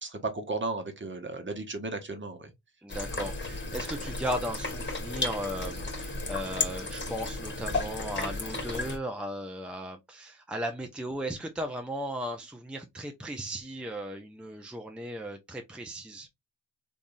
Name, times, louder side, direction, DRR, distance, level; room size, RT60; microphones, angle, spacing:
voice 1, 0.0-2.5, right 3 dB, 30° right, 1.1 m, -34 dB
voice 2, 2.8-16.3, equal, ahead, 0.6 m, -36 dB
sound 1, 2.9-9.0, left 3 dB, 25° left, 1.4 m, -34 dB
3.4 x 2.6 x 2.6 m
cardioid pair, 60°, 41 cm